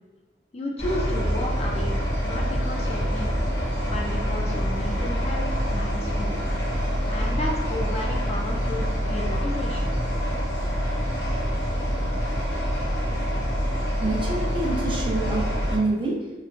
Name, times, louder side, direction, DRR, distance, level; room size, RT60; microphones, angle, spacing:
voice 1, 0.5-2.0 2.2-3.3 3.9-6.4 7.1-9.9, left 1 dB, 35° left, -1 dB, 0.4 m, -33 dB
sound 1, 0.8-15.8, equal, 75° left, 0.7 m, -26 dB
voice 2, 14.0-16.4, right 2 dB, 30° right, -3 dB, 0.5 m, -27 dB
3.1 x 2.1 x 2.4 m, 1.2 s
head